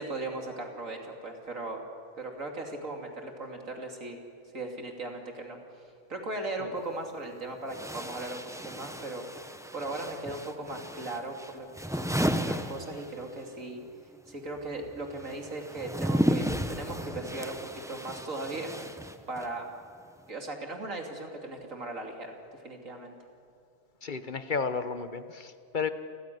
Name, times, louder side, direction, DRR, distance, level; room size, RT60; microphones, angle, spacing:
voice 1, 0.0-1.8 2.2-4.2 4.5-5.6 6.1-9.2 9.7-11.7 11.9-13.8 14.3-18.7 19.3-19.7 20.3-23.1, right 2 dB, 70° right, 2 dB, 3.1 m, -38 dB
sound 1, 6.8-6.9 7.7-13.5 13.7-19.6, equal, 5° right, 0.8 m, -34 dB
voice 2, 24.0-25.9, left 5 dB, 40° left, 10 dB, 1.0 m, -32 dB
29.0 x 15.5 x 9.2 m, 2.3 s
omnidirectional pair, 1.4 m